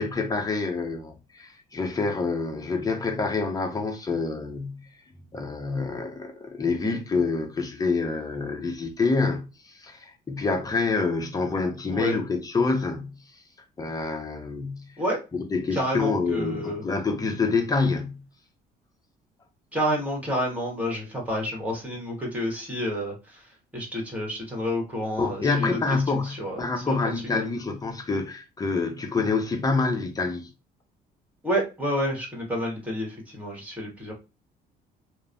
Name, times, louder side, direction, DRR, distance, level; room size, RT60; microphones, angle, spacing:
voice 1, 0.0-4.8 5.3-9.4 9.8-13.2 13.8-14.9 15.3-18.2 25.2-30.5, left 4 dB, 20° left, 0.6 m, -27 dB
voice 2, 15.7-16.8 19.7-23.4 23.7-25.8 26.1-27.0 27.2-27.4 31.4-34.1, equal, 10° right, 1.4 m, -29 dB
2.9 x 2.1 x 2.5 m
cardioid pair, 110°, 17 cm